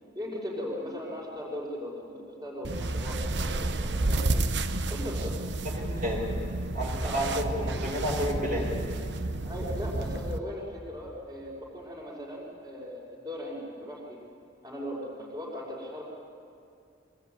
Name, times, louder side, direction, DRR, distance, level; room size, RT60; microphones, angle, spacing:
voice 1, 0.2-4.4 4.9-5.4 7.0-7.3 9.4-14.2 14.6-16.0, left 1 dB, 20° right, -4 dB, 5.3 m, -38 dB
sound 1, 2.6-10.4, right 2 dB, 65° right, 1.0 m, -31 dB
voice 2, 5.7-6.2 6.7-8.7, equal, 45° right, -4 dB, 4.9 m, -30 dB
24.0 x 19.0 x 9.5 m, 2.5 s
head